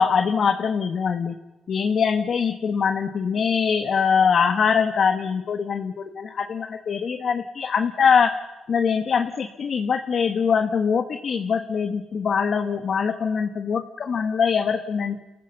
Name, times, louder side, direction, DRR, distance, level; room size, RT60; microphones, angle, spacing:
voice 1, 0.0-1.4 1.7-8.3 8.7-15.2, left 6 dB, 50° left, 6 dB, 1.3 m, -23 dB
29.5 x 14.5 x 7.0 m, 1.0 s
cardioid pair, 90°, 0 cm